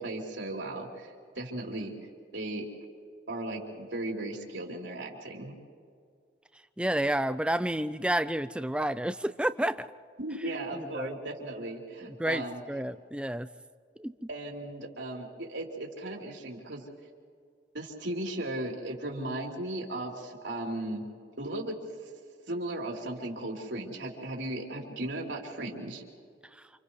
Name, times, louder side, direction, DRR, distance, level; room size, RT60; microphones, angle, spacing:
voice 1, 0.0-1.9 2.3-2.7 3.3-5.5 10.2-12.6 14.3-16.8 17.7-21.0 21.4-21.8 22.5-26.0, right 1 dB, 75° right, -1 dB, 3.7 m, -36 dB
voice 2, 6.8-9.9 10.7-11.2 12.2-13.5 14.0-14.1, right 1 dB, 5° right, 12 dB, 0.5 m, -30 dB
29.5 x 28.0 x 3.2 m, 2.2 s
head